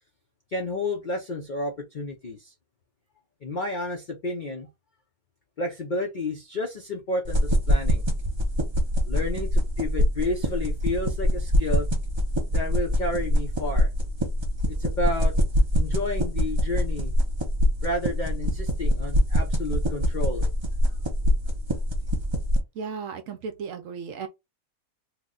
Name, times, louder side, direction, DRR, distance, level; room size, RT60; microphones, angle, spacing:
voice 1, 0.5-2.5 3.4-4.7 5.6-8.0 9.0-11.9 12.5-13.9 14.7-15.3 15.8-17.1 17.8-20.5, left 2 dB, 65° left, 0.4 m, -31 dB
sound 1, 7.2-22.6, equal, 40° right, 0.4 m, -24 dB
voice 2, 22.7-24.3, right 5 dB, 70° right, 0.9 m, -35 dB
2.9 x 2.1 x 3.7 m
omnidirectional pair, 1.6 m